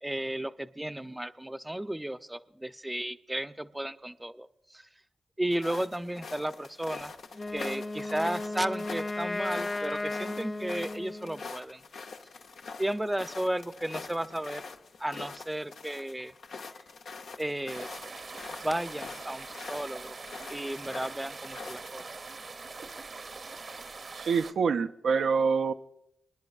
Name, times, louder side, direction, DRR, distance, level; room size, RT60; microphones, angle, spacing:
voice 1, 0.0-4.9 5.4-7.1 7.5-11.8 12.8-14.6 15.0-16.3 17.4-17.9 18.6-20.2 20.5-22.0, right 1 dB, 15° right, 12 dB, 0.6 m, -34 dB
sound 1, 5.5-22.0, left 4 dB, 75° left, 0.7 m, -45 dB
Wind instrument woodwind instrument, 7.3-11.5, left 2 dB, 40° left, 0.7 m, -35 dB
sound 2, 17.7-24.5, right 4 dB, 55° right, 0.8 m, -43 dB
voice 2, 24.1-25.7, right 5 dB, 75° right, 7 dB, 0.4 m, -26 dB
25.5 x 10.5 x 2.4 m, 0.79 s
supercardioid pair, 40°, 0 cm